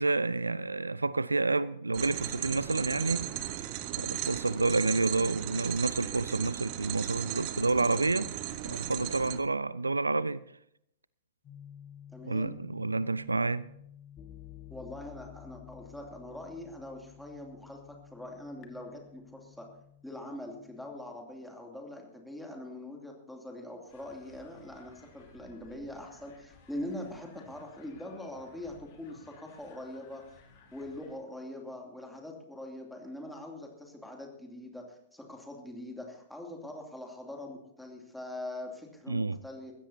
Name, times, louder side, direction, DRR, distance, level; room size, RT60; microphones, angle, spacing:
voice 1, 0.0-3.3 3.9-8.3 8.6-10.4 12.2-13.7 39.1-39.4, right 3 dB, 80° right, 0.4 m, -29 dB
sound 1, 1.9-9.4, right 12 dB, 40° right, 1.0 m, -36 dB
sound 2, 11.4-21.1, left 10 dB, 25° left, 1.7 m, -52 dB
voice 2, 12.1-12.5 14.7-19.7 20.0-30.2 30.7-39.7, left 1 dB, ahead, 2.8 m, -43 dB
sound 3, 23.9-31.2, left 4 dB, 45° left, 3.5 m, -58 dB
21.5 x 15.5 x 2.8 m
figure-of-eight pair, 105°, 0 cm